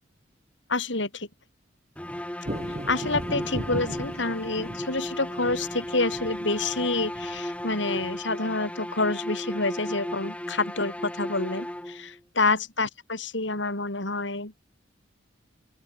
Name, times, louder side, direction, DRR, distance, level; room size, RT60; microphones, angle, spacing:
voice 1, 0.7-1.3 2.9-14.5, left 3 dB, 70° left, 4.4 m, -28 dB
sound 1, 2.0-12.2, equal, 5° left, 1.3 m, -35 dB
sound 2, 2.5-7.9, right 1 dB, 35° right, 2.2 m, -37 dB
open air
head